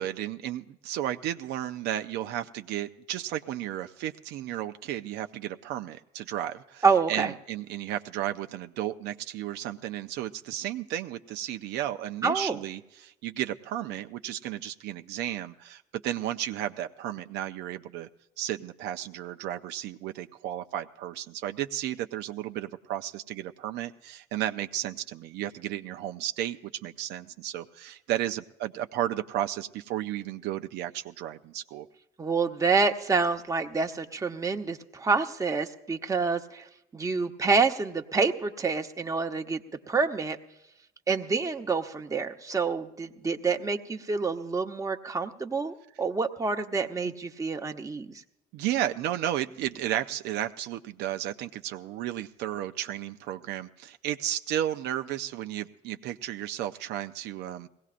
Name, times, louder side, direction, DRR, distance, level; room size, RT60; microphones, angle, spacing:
voice 1, 0.0-18.1 18.4-31.9 48.5-57.7, right 12 dB, 85° right, 8 dB, 0.5 m, -33 dB
voice 2, 6.8-7.3 12.2-12.6 32.2-36.6 36.9-39.6 39.9-40.4 41.1-48.1, right 4 dB, 20° right, 4 dB, 0.9 m, -27 dB
21.0 x 17.5 x 2.5 m, 0.89 s
cardioid pair, 110°, 17 cm